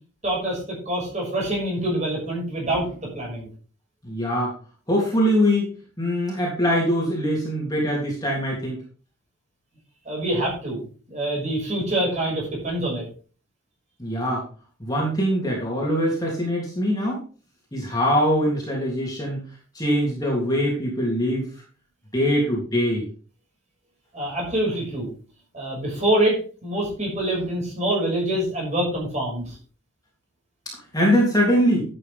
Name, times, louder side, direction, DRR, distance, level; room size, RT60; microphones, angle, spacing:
voice 1, 0.2-3.5 10.0-10.8 11.1-13.1 24.1-25.1 25.5-29.6, right 1 dB, 35° right, -2 dB, 6.3 m, -25 dB
voice 2, 4.0-4.6 4.9-5.7 6.0-8.8 14.0-14.4 14.8-17.2 17.7-19.4 19.7-21.5 22.1-23.1 30.9-31.8, equal, 20° left, -3 dB, 3.2 m, -22 dB
11.5 x 8.5 x 3.7 m, 0.38 s
head